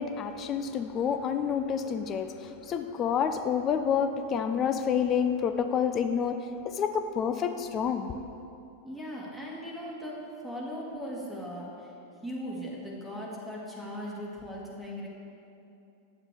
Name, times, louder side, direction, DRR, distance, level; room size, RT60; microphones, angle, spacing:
voice 1, 0.0-8.2, left 7 dB, 30° left, 8 dB, 0.4 m, -29 dB
voice 2, 8.8-11.9 12.2-15.1, equal, 5° left, -5 dB, 2.0 m, -38 dB
9.3 x 7.3 x 4.9 m, 2.7 s
figure-of-eight pair, 90°, 0 cm